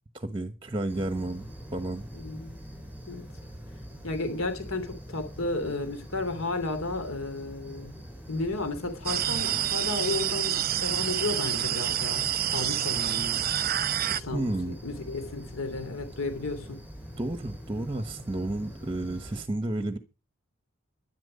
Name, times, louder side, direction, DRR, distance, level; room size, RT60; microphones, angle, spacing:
voice 1, 0.1-1.5 1.7-2.1 14.3-14.8 17.2-20.0, right 2 dB, 25° right, 1.2 m, -31 dB
sound 1, 0.9-19.4, equal, 10° right, 6.5 m, -44 dB
voice 2, 2.1-2.6 3.1-3.2 4.0-7.9 8.3-13.4 14.1-14.4 14.8-16.8, left 2 dB, 75° left, 3.0 m, -33 dB
sound 2, 9.1-14.2, right 11 dB, 45° right, 0.8 m, -28 dB
12.0 x 10.5 x 5.4 m
head